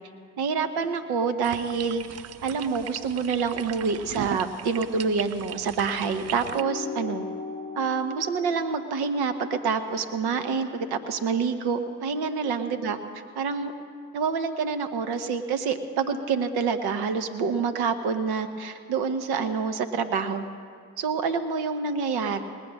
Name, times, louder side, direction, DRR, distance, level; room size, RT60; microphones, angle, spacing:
voice 1, 0.4-2.0 2.4-7.3 7.8-13.0 13.4-13.7 14.1-20.4 21.0-22.4, right 5 dB, 60° right, 9 dB, 1.1 m, -27 dB
sound 1, 1.4-6.6, right 10 dB, 40° right, 0.5 m, -38 dB
sound 2, 6.5-11.3, left 4 dB, 15° left, 1.0 m, -40 dB
19.0 x 6.9 x 7.5 m, 2.2 s
hypercardioid pair, 45°, 43 cm